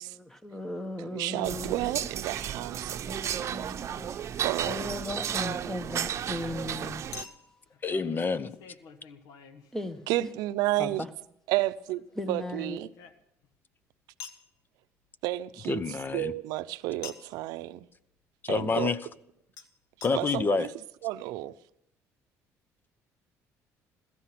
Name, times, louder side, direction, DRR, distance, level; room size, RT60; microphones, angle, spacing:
voice 1, 0.0-1.9 3.1-4.1 4.7-7.1 9.7-10.3 10.8-11.1 12.2-12.8, left 1 dB, 5° left, 1.2 m, -37 dB
voice 2, 1.0-3.6 4.4-4.8 10.1-11.0 11.5-12.0 12.3-12.9 15.2-15.8 16.1-17.8 18.5-18.9 20.1-20.7 21.0-21.5, right 17 dB, 85° right, 0.6 m, -31 dB
sound 1, 1.4-7.2, right 9 dB, 50° right, 0.8 m, -33 dB
Chink clink, 7.1-10.3 11.9-13.6 14.2-14.5 17.0-17.4 19.6-19.7 20.0-20.1 20.8-20.9 21.0-21.1, left 7 dB, 75° left, 1.4 m, -47 dB
voice 3, 7.8-8.6 15.7-16.3 18.4-19.0 20.0-20.7, left 4 dB, 30° left, 0.7 m, -28 dB
17.0 x 13.0 x 5.9 m
cardioid pair, 100°, 6 cm